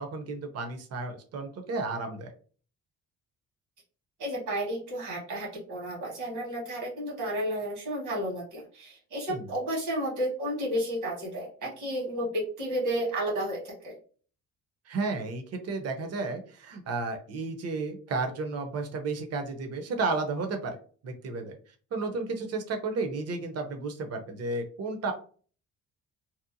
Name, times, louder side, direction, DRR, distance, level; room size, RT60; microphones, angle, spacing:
voice 1, 0.0-2.3 9.3-9.4 14.9-20.8 21.0-21.6 21.9-25.1, right 3 dB, 55° right, 5 dB, 0.7 m, -32 dB
voice 2, 4.2-13.9, right 1 dB, 90° right, -3 dB, 1.5 m, -32 dB
2.8 x 2.1 x 2.6 m, 0.42 s
cardioid pair, 90°, 30 cm